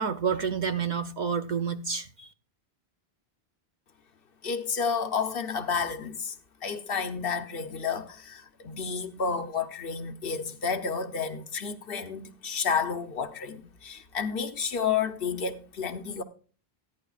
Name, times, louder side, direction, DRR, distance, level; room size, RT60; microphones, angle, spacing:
voice 1, 0.0-2.3, right 6 dB, 50° right, 0.7 m, -29 dB
voice 2, 4.4-6.3 6.6-16.2, left 6 dB, 60° left, 1.0 m, -31 dB
14.5 x 10.5 x 2.4 m
omnidirectional pair, 1.1 m